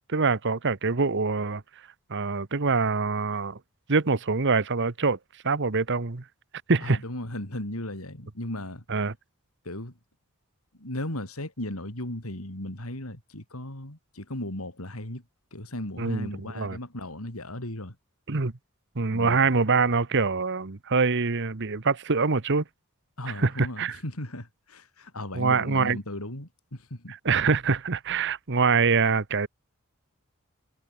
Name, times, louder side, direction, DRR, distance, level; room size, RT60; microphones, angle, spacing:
voice 1, 0.0-1.6 2.1-3.6 3.9-5.2 5.4-6.2 6.7-7.0 8.9-9.1 16.0-16.3 16.6-16.8 18.3-18.5 18.9-22.6 23.3-23.9 25.3-26.0 27.1-29.5, right 4 dB, 55° right, 1.1 m, -24 dB
voice 2, 6.8-8.8 9.6-10.0 10.8-15.2 15.5-18.0 19.1-19.5 23.2-27.2, left 1 dB, 75° left, 4.8 m, -36 dB
head